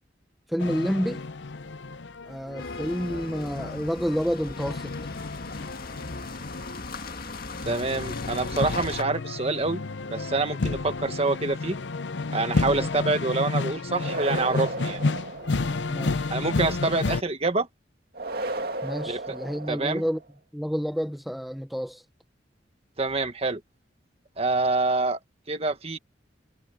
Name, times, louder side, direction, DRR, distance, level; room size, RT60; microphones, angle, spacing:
voice 1, 0.5-1.2 2.3-4.9 12.6-12.9 15.9-16.3 18.8-20.2 20.5-22.0, equal, ahead, 0.7 m, -29 dB
sound 1, 0.6-17.2, left 3 dB, 75° left, 0.7 m, -31 dB
sound 2, 2.6-9.0, left 3 dB, 55° left, 1.9 m, -38 dB
voice 2, 7.6-9.8 10.1-11.8 12.3-15.0 16.3-17.7 19.1-19.2 19.7-20.0 23.0-23.6 24.4-25.2 25.5-26.0, right 3 dB, 35° right, 1.6 m, -26 dB
sound 3, 14.0-16.0 18.1-20.2, right 2 dB, 60° right, 2.3 m, -34 dB
head